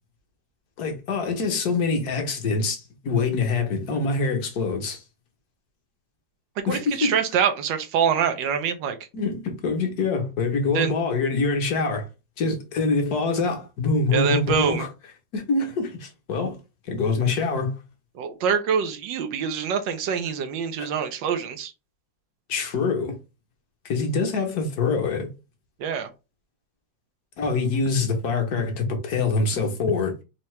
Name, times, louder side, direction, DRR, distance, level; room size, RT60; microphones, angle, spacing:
voice 1, 0.8-5.0 6.7-7.2 9.1-12.1 12.4-14.9 15.3-16.6 16.9-17.8 20.8-20.9 22.5-23.1 23.8-25.3 27.4-30.1, left 4 dB, 60° left, 1.5 m, -25 dB
voice 2, 6.6-9.0 10.7-10.9 14.1-14.8 18.2-21.7 25.8-26.1, right 7 dB, 90° right, 1.4 m, -25 dB
4.6 x 2.8 x 3.1 m
omnidirectional pair, 1.9 m